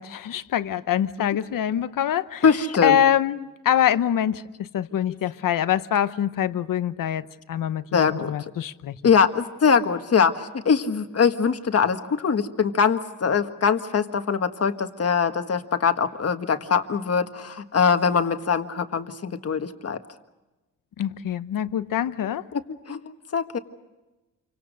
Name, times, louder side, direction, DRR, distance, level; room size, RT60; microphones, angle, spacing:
voice 1, 0.0-2.4 2.8-9.0 21.0-22.5, left 10 dB, 85° left, 1.0 m, -24 dB
voice 2, 2.4-3.0 5.1-5.2 7.9-8.3 9.0-20.0 22.5-23.0 23.3-23.6, left 6 dB, 50° left, 1.6 m, -22 dB
29.0 x 25.0 x 6.5 m
cardioid pair, 115°, 32 cm